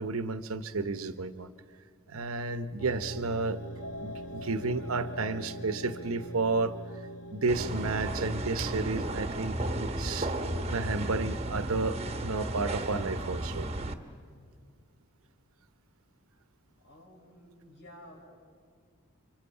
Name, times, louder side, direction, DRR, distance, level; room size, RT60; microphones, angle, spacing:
voice 1, 0.0-1.5 2.1-3.6 4.0-6.8 7.3-10.3 10.7-13.7, right 3 dB, 90° right, 11 dB, 0.9 m, -32 dB
sound 1, 2.8-9.0, right 1 dB, 85° left, 1.8 m, -43 dB
sound 2, 7.5-13.9, right 1 dB, 30° right, 1.0 m, -34 dB
voice 2, 16.7-18.3, equal, 65° left, -2 dB, 4.6 m, -52 dB
29.5 x 25.0 x 5.7 m, 2.1 s
head